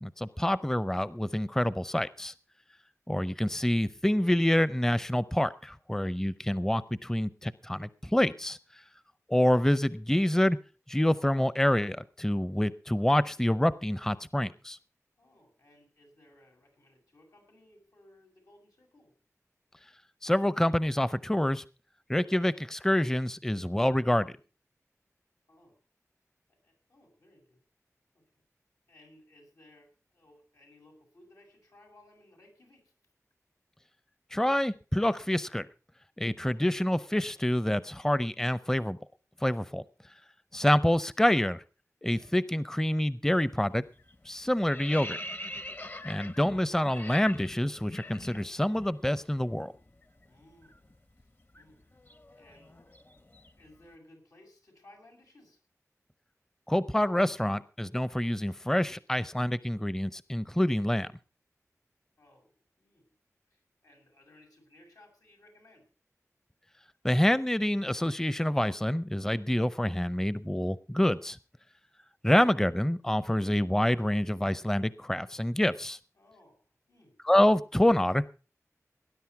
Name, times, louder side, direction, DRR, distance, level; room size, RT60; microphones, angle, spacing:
voice 1, 0.0-2.3 3.1-8.6 9.3-10.6 10.9-14.8 20.2-21.6 22.1-24.3 34.3-35.7 36.2-39.0 39.4-39.8 40.5-41.6 42.0-43.8 44.3-45.2 46.0-49.7 56.7-61.1 67.0-71.4 72.2-76.0 77.2-78.4, left 1 dB, 10° left, 16 dB, 0.6 m, -27 dB
voice 2, 15.2-19.1 25.5-25.8 26.6-27.6 28.1-28.2 28.9-32.9 49.5-50.0 50.3-50.9 51.2-51.3 51.5-51.9 52.3-52.8 53.6-55.6 62.2-63.1 63.5-65.9 76.2-77.2, left 1 dB, 90° left, 1 dB, 7.1 m, -60 dB
sound 1, 43.4-43.7 44.0-48.9 49.2-49.4 49.7-53.8, left 1 dB, 40° left, 0.9 m, -43 dB
19.0 x 10.5 x 4.6 m, 0.35 s
wide cardioid pair, 70°, 6 cm